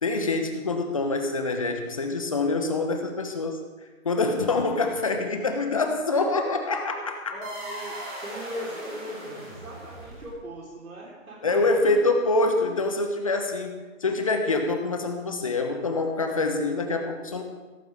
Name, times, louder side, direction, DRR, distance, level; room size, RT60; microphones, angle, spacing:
voice 1, 0.0-3.6 4.0-7.4 11.4-13.7 14.0-17.4, left 3 dB, 25° left, 5 dB, 1.1 m, -25 dB
voice 2, 7.3-11.8, equal, 90° right, -4 dB, 4.2 m, -39 dB
sound 1, 7.4-10.6, right 1 dB, 10° right, 2.1 m, -39 dB
16.5 x 13.5 x 3.6 m, 1.3 s
hypercardioid pair, 170°, 41 cm